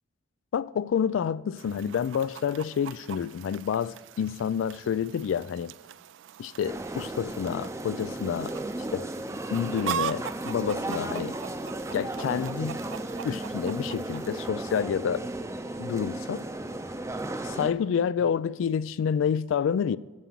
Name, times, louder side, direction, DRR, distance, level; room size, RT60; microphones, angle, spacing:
voice 1, 0.5-5.7 6.4-8.6 8.9-9.1 9.5-11.4 11.9-12.8 13.2-15.3 15.8-16.4 17.4-20.0, left 7 dB, 80° left, 0.3 m, -28 dB
Chicken rooster, 1.6-14.5, right 9 dB, 70° right, 0.3 m, -41 dB
sound 1, 6.6-17.7, right 2 dB, 15° right, 0.6 m, -35 dB
8.2 x 7.6 x 6.0 m
head